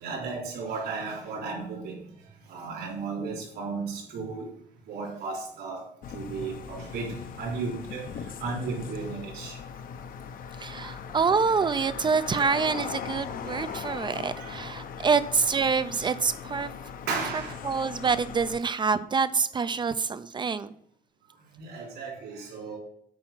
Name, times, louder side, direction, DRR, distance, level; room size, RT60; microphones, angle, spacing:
voice 1, 0.0-2.0 2.5-4.5 4.9-5.8 6.1-7.1 7.4-8.0 8.4-9.5 10.8-10.9 13.7-13.8 14.3-14.5 17.1-17.5 21.6-22.8, right 4 dB, 75° right, -4 dB, 3.5 m, -34 dB
sound 1, 6.0-18.6, left 7 dB, 55° left, 0.7 m, -39 dB
voice 2, 10.6-16.7 17.6-20.7, right 5 dB, 25° right, 13 dB, 0.4 m, -26 dB
8.7 x 4.7 x 6.0 m, 0.66 s
cardioid pair, 110°, 17 cm